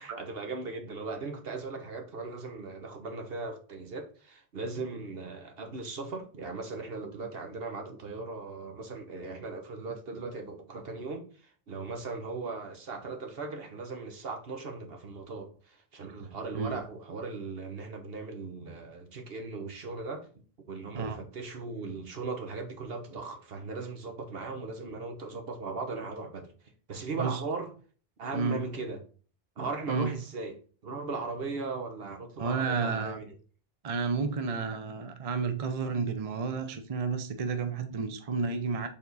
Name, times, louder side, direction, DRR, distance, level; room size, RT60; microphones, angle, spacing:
voice 1, 0.0-20.3 20.7-26.5 26.9-27.7 28.2-29.0 29.6-30.6 30.8-33.3, right 3 dB, 65° right, 1.3 m, -38 dB
voice 2, 16.2-16.8 20.9-21.2 27.2-27.4 28.3-28.7 29.9-30.1 32.4-33.2 33.8-38.9, right 5 dB, 40° right, 0.7 m, -31 dB
6.9 x 3.7 x 4.0 m
omnidirectional pair, 1.1 m